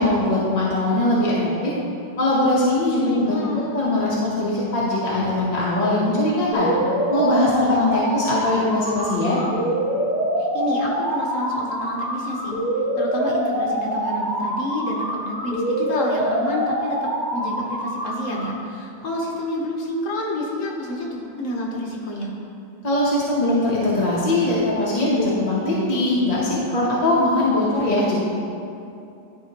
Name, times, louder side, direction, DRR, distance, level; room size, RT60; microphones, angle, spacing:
voice 1, 0.0-1.7 2.2-3.4 3.7-6.7 7.1-9.4 22.8-28.2, left 1 dB, 30° left, -7 dB, 0.8 m, -21 dB
voice 2, 2.8-3.7 7.6-8.1 10.4-12.6 13.0-22.3, left 1 dB, 50° left, -2 dB, 1.2 m, -29 dB
sound 1, 6.5-18.5, right 1 dB, 70° right, 2.3 m, -25 dB
11.0 x 5.0 x 2.9 m, 2.6 s
omnidirectional pair, 1.9 m